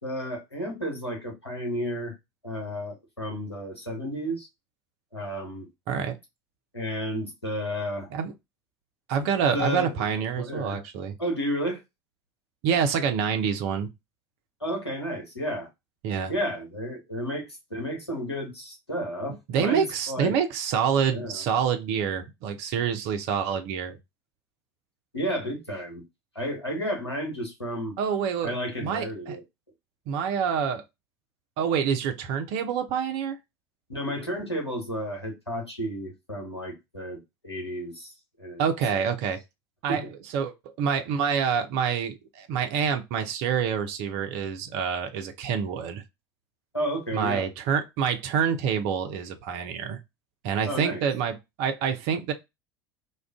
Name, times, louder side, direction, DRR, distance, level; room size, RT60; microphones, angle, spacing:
voice 1, 0.0-2.1 2.4-4.5 5.1-5.7 6.7-8.1 9.5-9.9 10.4-10.8 11.2-11.8 14.6-15.7 16.3-20.3 21.1-21.4 25.1-26.0 26.3-28.0 28.4-29.4 33.9-38.6 38.9-39.0 39.9-40.1 46.7-47.5 50.6-51.0, equal, 90° left, 1.0 m, -32 dB
voice 2, 9.1-11.2 12.6-13.9 16.0-16.3 19.5-24.0 28.0-28.6 28.8-29.4 30.1-30.8 31.6-33.4 38.6-39.4 39.8-40.0 40.3-46.0 47.1-50.0 50.4-52.3, right 7 dB, 55° right, 0.6 m, -27 dB
2.4 x 2.2 x 3.4 m
figure-of-eight pair, 70°, 13 cm